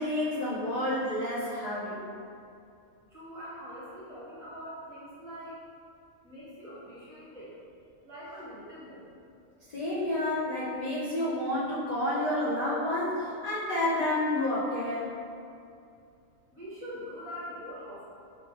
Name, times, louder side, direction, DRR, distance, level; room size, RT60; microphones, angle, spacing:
voice 1, 0.0-2.0 9.6-15.1, left 1 dB, 55° left, -9 dB, 0.4 m, -30 dB
voice 2, 3.1-5.6 6.2-7.6 8.0-9.1 16.5-18.0, equal, 30° right, -10 dB, 0.9 m, -43 dB
3.9 x 3.2 x 2.5 m, 2.5 s
omnidirectional pair, 1.5 m